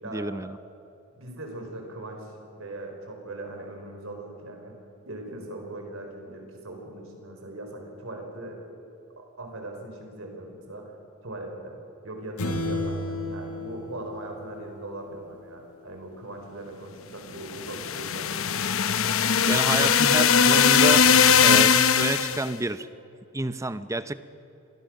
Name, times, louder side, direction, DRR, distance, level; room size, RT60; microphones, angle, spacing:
voice 1, 0.1-0.6 19.5-21.2 21.4-22.9 23.3-24.1, right 2 dB, 15° right, 13 dB, 0.7 m, -29 dB
voice 2, 1.2-4.7 5.0-8.6 9.2-11.0 11.2-11.8 12.0-18.3, right 2 dB, 65° right, 3 dB, 4.8 m, -40 dB
sound 1, 12.4-15.0, left 1 dB, 85° left, 1.9 m, -32 dB
sound 2, 17.5-22.5, left 6 dB, 65° left, 0.9 m, -20 dB
27.0 x 20.0 x 6.5 m, 2.9 s
head